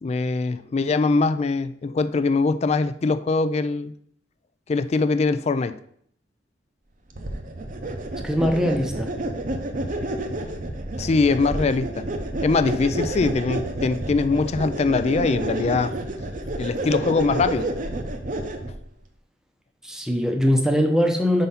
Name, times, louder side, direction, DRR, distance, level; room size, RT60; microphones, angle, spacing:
voice 1, 0.0-3.9 4.7-5.8 11.0-12.0 12.4-15.9 16.6-17.7, left 3 dB, 35° left, 13 dB, 0.3 m, -22 dB
sound 1, 7.1-18.8, right 1 dB, 45° right, 0.7 m, -29 dB
voice 2, 8.2-9.1 19.8-21.5, equal, 5° right, 3 dB, 0.7 m, -21 dB
5.5 x 3.9 x 5.5 m, 0.65 s
head